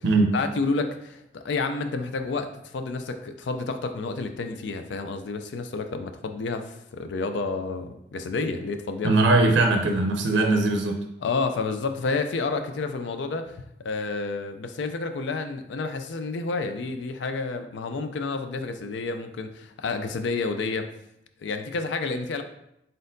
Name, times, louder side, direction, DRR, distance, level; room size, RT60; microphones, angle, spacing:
voice 1, 0.3-9.2 11.2-20.9 21.4-22.4, left 3 dB, 75° left, 7 dB, 0.4 m, -30 dB
voice 2, 9.0-10.9, right 2 dB, 75° right, 3 dB, 0.5 m, -20 dB
4.2 x 3.8 x 2.6 m, 0.79 s
head